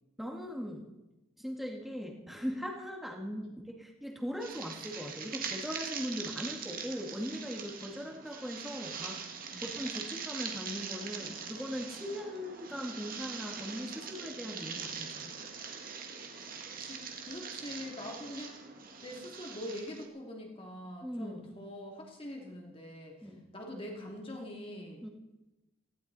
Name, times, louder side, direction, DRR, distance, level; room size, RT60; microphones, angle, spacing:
voice 1, 0.2-0.9 1.4-9.2 9.6-15.3 21.0-21.5 23.2-23.5 25.0-25.1, equal, ahead, 1 dB, 2.0 m, -40 dB
sound 1, 4.4-20.0, right 6 dB, 40° right, 1.7 m, -42 dB
voice 2, 16.8-18.6 19.0-25.0, left 1 dB, 25° left, 0 dB, 2.8 m, -44 dB
18.0 x 16.0 x 4.2 m, 1.0 s
head